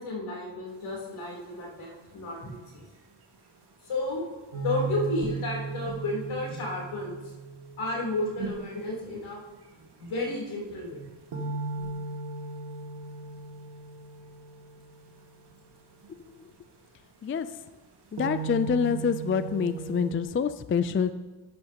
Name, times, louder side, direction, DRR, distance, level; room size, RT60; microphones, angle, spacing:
voice 1, 0.0-2.8 3.8-4.2 4.5-7.2 7.8-9.4 10.0-11.0, left 2 dB, 75° left, -2 dB, 3.6 m, -32 dB
sound 1, 0.6-20.1, right 4 dB, 55° right, 1.9 m, -50 dB
sound 2, 4.5-8.7 11.3-15.5 18.2-20.2, right 5 dB, 80° right, 2.3 m, -37 dB
voice 2, 18.1-21.1, left 6 dB, 30° left, 12 dB, 0.3 m, -26 dB
11.5 x 10.5 x 2.9 m, 1.3 s
wide cardioid pair, 120°, 49 cm